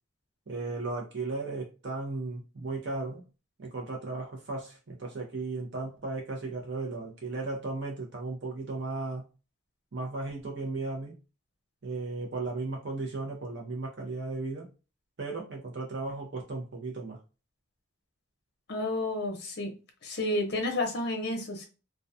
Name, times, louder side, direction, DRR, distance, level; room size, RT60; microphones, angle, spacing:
voice 1, 0.5-3.2 3.6-9.3 9.9-11.2 11.8-14.7 15.2-17.2, right 3 dB, 55° right, -1 dB, 0.6 m, -35 dB
voice 2, 18.7-19.7 20.0-21.7, left 1 dB, 50° left, 3 dB, 0.7 m, -31 dB
2.2 x 2.2 x 2.6 m, 0.32 s
head